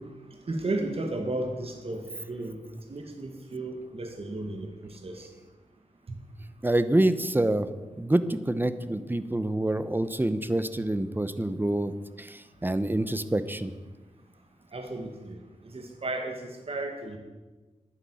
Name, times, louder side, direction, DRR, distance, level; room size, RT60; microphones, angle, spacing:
voice 1, 0.5-2.0 2.3-2.6 2.9-4.7 5.0-5.3 14.7-15.4 15.7-16.3 16.7-17.2, right 2 dB, 50° right, 3 dB, 1.9 m, -33 dB
voice 2, 6.6-7.7 8.0-11.9 12.2-13.7, right 1 dB, 15° right, 12 dB, 0.8 m, -26 dB
10.5 x 9.4 x 7.7 m, 1.2 s
cardioid pair, 70°, 13 cm